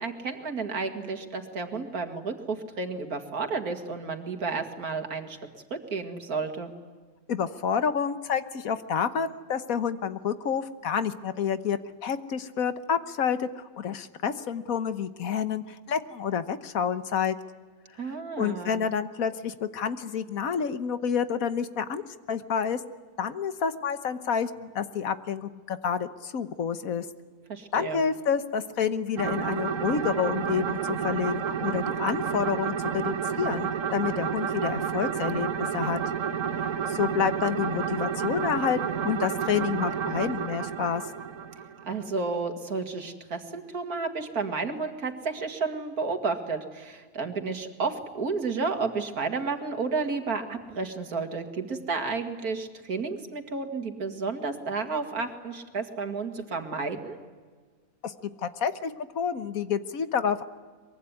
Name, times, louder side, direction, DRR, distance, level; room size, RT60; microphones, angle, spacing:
voice 1, 0.0-5.4 5.7-6.7 18.0-18.8 27.5-28.0 41.9-57.2, right 4 dB, 90° right, 6 dB, 2.7 m, -32 dB
voice 2, 7.3-17.4 18.4-22.0 22.3-22.8 23.2-27.1 27.7-36.0 36.9-41.0 58.0-58.1 58.4-60.5, left 7 dB, 70° left, 12 dB, 1.5 m, -29 dB
sound 1, 29.2-42.0, right 7 dB, 60° right, 1.5 m, -30 dB
24.0 x 22.5 x 9.7 m, 1.5 s
omnidirectional pair, 1.5 m